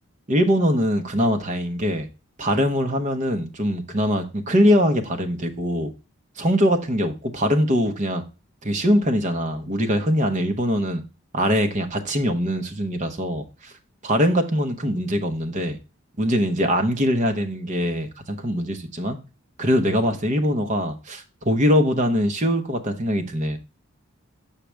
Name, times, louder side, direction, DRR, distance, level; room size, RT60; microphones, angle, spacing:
voice 1, 0.3-2.1 2.4-5.9 6.4-8.2 8.6-11.0 11.3-13.7 14.0-15.8 16.2-19.2 19.6-23.6, equal, 35° right, 0.9 m, -22 dB
6.1 x 5.8 x 3.3 m
head